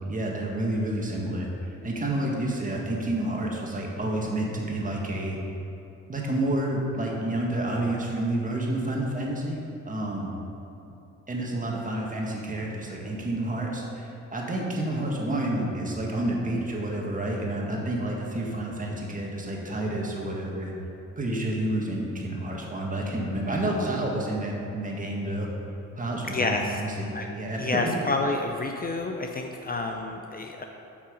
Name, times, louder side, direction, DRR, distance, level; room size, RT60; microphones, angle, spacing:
voice 1, 0.0-5.4 6.1-9.6 9.9-10.3 10.9-11.0 11.3-20.7 21.2-25.5 25.9-27.8, right 1 dB, 25° right, -2 dB, 1.7 m, -29 dB
voice 2, 26.3-26.6 27.1-27.3 27.6-30.6, left 3 dB, 30° left, 3 dB, 0.6 m, -29 dB
8.4 x 5.9 x 5.2 m, 2.9 s
cardioid pair, 90°, 30 cm